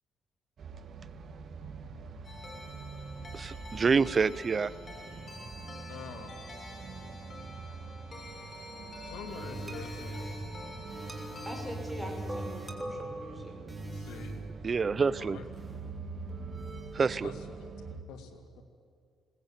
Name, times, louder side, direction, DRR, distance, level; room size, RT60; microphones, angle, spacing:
sound 1, 0.6-18.0, right 4 dB, 55° right, 1.7 m, -45 dB
sound 2, 2.2-11.6, left 2 dB, 40° left, 5.7 m, -48 dB
voice 1, 3.3-4.7 14.6-15.4 16.9-17.3, right 5 dB, 40° right, 18 dB, 0.7 m, -27 dB
voice 2, 5.9-6.5 9.0-10.3 13.9-14.4 15.2-15.4 17.2-17.7 18.1-18.6, left 6 dB, 85° left, 6 dB, 2.3 m, -46 dB
sound 3, 9.3-17.9, right 1 dB, 20° right, 3.4 m, -42 dB
voice 3, 11.4-13.5, equal, ahead, 2 dB, 6.3 m, -42 dB
21.0 x 19.5 x 8.9 m, 2.2 s
cardioid pair, 90°, 0 cm